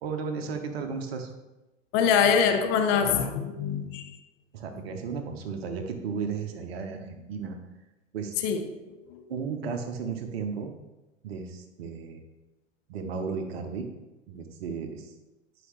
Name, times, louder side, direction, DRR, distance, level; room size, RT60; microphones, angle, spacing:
voice 1, 0.0-1.3 4.5-7.6 8.1-8.4 9.3-10.7 11.2-12.2 12.9-13.9 14.3-15.1, right 5 dB, 50° right, 5 dB, 1.1 m, -34 dB
voice 2, 1.9-4.2 8.4-9.2, left 7 dB, 25° left, 7 dB, 0.6 m, -25 dB
9.7 x 5.0 x 3.1 m, 1.0 s
figure-of-eight pair, 100°, 39 cm